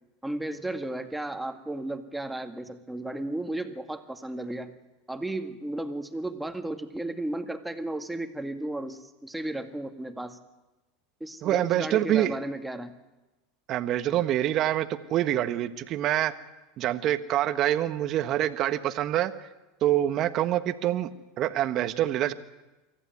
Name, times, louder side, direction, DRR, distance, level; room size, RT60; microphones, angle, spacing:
voice 1, 0.2-4.7 5.1-10.4 11.2-12.9, right 1 dB, 5° right, 6 dB, 2.1 m, -34 dB
voice 2, 11.4-12.4 13.7-16.3 16.8-19.3 19.8-21.1 21.4-22.3, right 12 dB, 50° right, 11 dB, 1.3 m, -26 dB
24.0 x 15.0 x 9.5 m, 1.1 s
hypercardioid pair, 95°, 0 cm